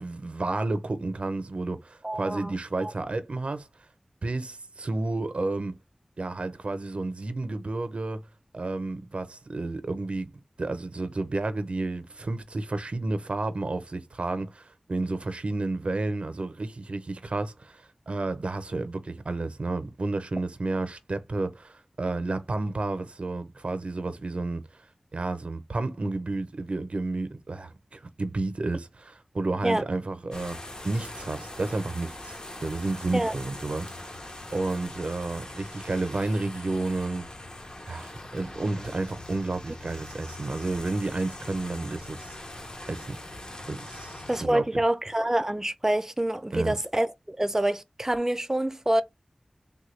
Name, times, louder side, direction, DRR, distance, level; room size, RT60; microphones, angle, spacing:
voice 1, 0.0-3.7 4.2-5.8 6.2-8.2 8.5-10.3 10.6-24.6 25.1-37.3 37.9-42.4 42.9-43.2 43.7-44.6 46.5-46.8, right 2 dB, 75° right, 0.6 m, -31 dB
voice 2, 2.0-2.9 29.6-29.8 33.1-33.3 44.3-49.0, right 1 dB, 20° right, 0.5 m, -26 dB
sound 1, 30.3-44.5, left 1 dB, 40° left, 0.8 m, -42 dB
3.5 x 2.2 x 3.1 m
wide cardioid pair, 55°, 2 cm